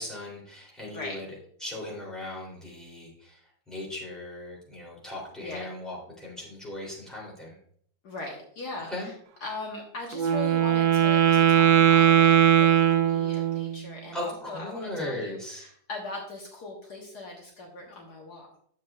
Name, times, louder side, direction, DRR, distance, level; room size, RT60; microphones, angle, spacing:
voice 1, 0.0-1.3 1.6-7.6 8.9-9.1 14.1-15.7, left 1 dB, ahead, -4 dB, 3.1 m, -38 dB
voice 2, 8.0-9.1 9.4-18.6, left 3 dB, 60° left, -1 dB, 1.8 m, -40 dB
Wind instrument woodwind instrument, 10.1-13.8, right 10 dB, 70° right, 1.0 m, -20 dB
10.0 x 7.3 x 2.4 m, 0.63 s
omnidirectional pair, 2.0 m